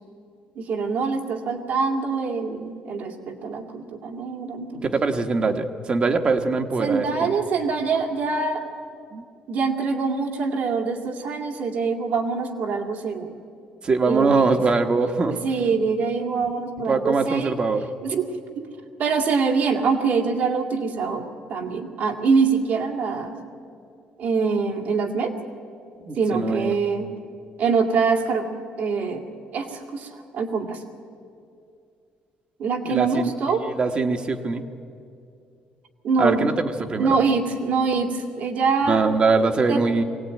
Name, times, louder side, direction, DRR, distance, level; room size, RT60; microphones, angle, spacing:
voice 1, 0.6-4.9 6.8-8.6 9.5-13.4 14.1-14.6 15.3-17.5 18.0-18.3 18.6-18.7 19.0-21.2 21.5-23.4 24.2-25.3 26.2-27.1 27.6-28.4 28.8-29.2 29.5-30.1 30.3-30.8 32.6-33.6 36.0-36.4 37.0-39.1 39.7-39.8, right 5 dB, 65° right, 2 dB, 2.4 m, -24 dB
voice 2, 4.7-7.3 9.1-9.2 13.8-15.4 16.9-17.9 26.1-26.7 32.9-33.3 33.6-34.6 36.2-37.2 38.9-40.0, right 4 dB, 35° right, 6 dB, 1.3 m, -22 dB
22.5 x 17.5 x 9.2 m, 2.5 s
cardioid pair, 125°, 3 cm